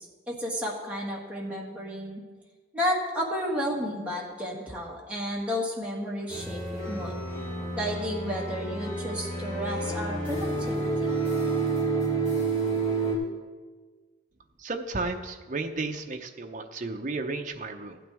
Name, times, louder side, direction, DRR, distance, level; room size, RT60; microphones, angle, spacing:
voice 1, 0.3-2.2 2.7-7.1 7.8-11.1, equal, 5° right, -4 dB, 1.7 m, -32 dB
sound 1, 6.3-13.2, right 3 dB, 35° left, 2.8 m, -29 dB
voice 2, 14.6-18.0, right 3 dB, 40° right, 4 dB, 0.7 m, -33 dB
15.0 x 9.2 x 3.5 m, 1.4 s
head